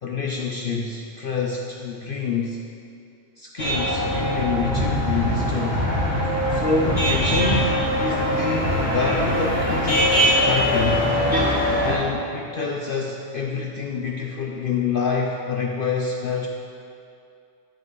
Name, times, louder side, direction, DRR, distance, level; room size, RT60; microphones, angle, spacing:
voice 1, 0.0-2.6 3.4-5.8 6.5-7.7 8.0-11.1 11.8-16.5, left 4 dB, 50° left, 0 dB, 0.8 m, -27 dB
sound 1, 3.6-11.9, equal, 10° right, 2.9 m, -22 dB
11.0 x 10.0 x 4.0 m, 2.5 s
omnidirectional pair, 1.3 m